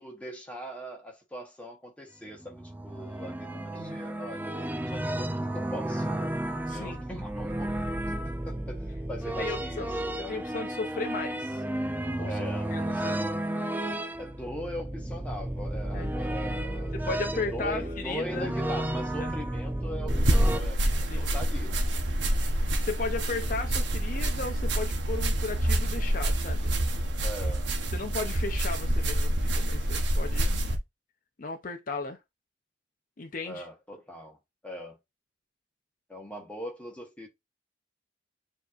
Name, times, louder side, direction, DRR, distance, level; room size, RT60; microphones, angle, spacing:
voice 1, 0.0-6.1 6.7-7.7 8.1-10.4 12.2-12.7 14.2-16.9 17.3-20.8 21.1-21.7 27.2-27.7 33.4-34.4 34.6-35.0 36.1-37.3, equal, 5° left, 1.1 m, -40 dB
sound 1, 2.3-20.6, right 1 dB, 10° right, 0.3 m, -32 dB
voice 2, 6.7-7.0 9.4-9.9 10.2-11.6 12.2-13.3 15.9-16.1 16.9-18.5 19.2-19.3 21.1-21.3 22.6-26.7 27.9-30.6 31.4-32.2 33.2-33.6, left 3 dB, 45° left, 0.6 m, -36 dB
sound 2, 20.1-30.8, right 1 dB, 75° right, 0.9 m, -27 dB
7.1 x 2.8 x 2.4 m
head